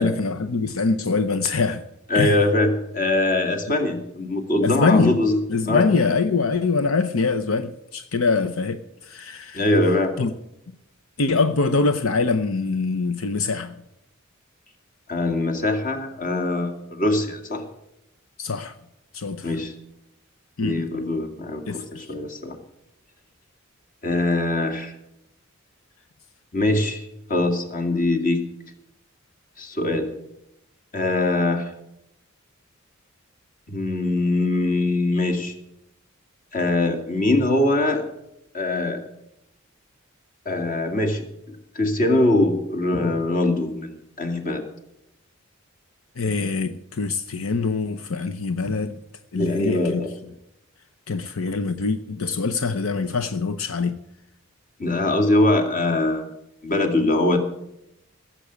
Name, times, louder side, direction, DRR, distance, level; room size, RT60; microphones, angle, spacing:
voice 1, 0.0-1.8 2.1-2.4 4.6-5.2 5.5-9.7 10.2-10.3 11.2-13.7 18.4-18.7 19.1-19.5 20.6-20.8 21.7-22.1 46.2-49.0 49.3-50.1 51.1-53.9, left 4 dB, 75° left, 9 dB, 0.7 m, -24 dB
voice 2, 2.1-5.4 5.7-5.8 9.5-10.1 15.1-17.6 19.4-19.7 20.6-22.6 24.0-24.9 26.5-27.0 27.3-28.4 29.6-30.1 30.9-31.7 33.7-35.5 36.5-38.0 38.5-39.0 40.5-44.6 49.4-50.1 54.8-56.3 56.6-57.4, left 2 dB, 40° left, 5 dB, 2.2 m, -22 dB
17.0 x 7.6 x 8.1 m, 0.83 s
head